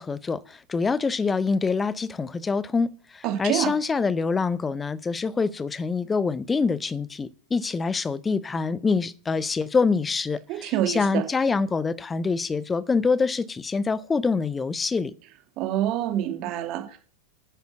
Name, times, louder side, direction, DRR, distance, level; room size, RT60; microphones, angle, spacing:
voice 1, 0.0-15.1, left 4 dB, 15° left, 0.7 m, -25 dB
voice 2, 3.2-3.7 10.5-11.2 15.6-17.0, right 12 dB, 40° right, 2.3 m, -26 dB
9.6 x 7.9 x 6.0 m
figure-of-eight pair, 90°, 0 cm